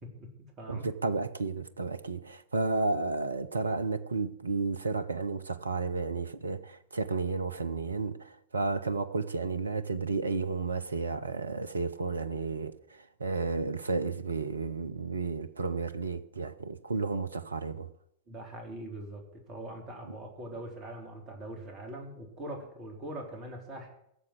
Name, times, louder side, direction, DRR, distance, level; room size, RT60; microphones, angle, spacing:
voice 1, 0.0-0.9 18.3-23.9, right 1 dB, 30° right, 4.0 m, -42 dB
voice 2, 0.7-17.9 20.0-20.2, right 3 dB, 75° right, 0.6 m, -32 dB
16.0 x 7.2 x 8.1 m
figure-of-eight pair, 90°, 0 cm